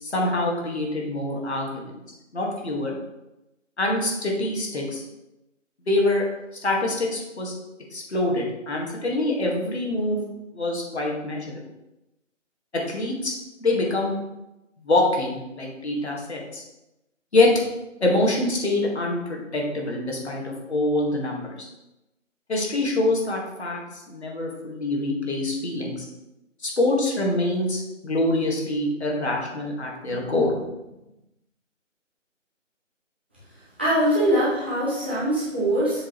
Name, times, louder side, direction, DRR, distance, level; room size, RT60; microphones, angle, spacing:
voice 1, 0.0-1.8 2.3-3.0 3.8-5.0 5.9-6.2 6.6-7.5 7.9-10.2 10.5-11.5 12.7-13.3 13.6-14.2 14.8-16.6 17.3-17.5 18.0-21.7 22.5-23.8 24.1-26.1 26.6-30.5, left 2 dB, 55° left, -2 dB, 2.0 m, -25 dB
voice 2, 33.8-36.0, right 1 dB, 10° right, -12 dB, 1.1 m, -22 dB
7.4 x 5.2 x 3.2 m, 0.95 s
figure-of-eight pair, 170°, 39 cm